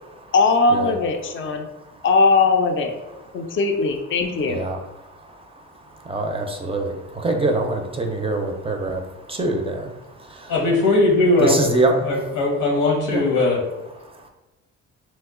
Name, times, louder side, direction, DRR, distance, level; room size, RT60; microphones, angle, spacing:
voice 1, 0.3-1.7 2.0-2.9 3.3-4.6, left 3 dB, 45° left, 5 dB, 0.4 m, -19 dB
voice 2, 6.1-6.9 7.2-9.0 9.4-9.7 11.4-11.9 13.1-13.2, right 2 dB, 20° right, 3 dB, 0.4 m, -23 dB
voice 3, 10.5-11.6 12.0-13.6, left 2 dB, 90° left, -1 dB, 0.9 m, -19 dB
2.9 x 2.1 x 3.5 m, 1.1 s
cardioid pair, 90°, 30 cm